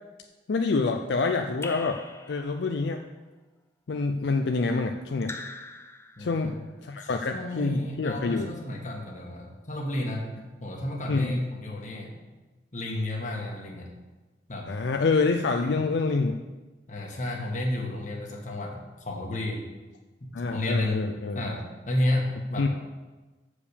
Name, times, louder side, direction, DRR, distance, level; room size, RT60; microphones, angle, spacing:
voice 1, 0.5-2.0 2.3-3.0 3.9-5.3 6.2-6.5 6.8-8.5 11.1-11.3 14.7-16.3 20.3-21.4 22.6-22.7, left 3 dB, 75° left, 4 dB, 0.5 m, -26 dB
Raindrop / Drip, 1.6-2.8 5.2-6.6, left 3 dB, 15° left, 0.4 m, -42 dB
voice 2, 6.2-6.6 7.0-10.3 10.6-12.2 12.7-13.9 14.5-14.7 15.6-16.0 16.9-19.6 20.2-21.0 21.3-22.7, left 1 dB, 45° left, 0 dB, 1.4 m, -32 dB
7.0 x 5.0 x 6.8 m, 1.2 s
head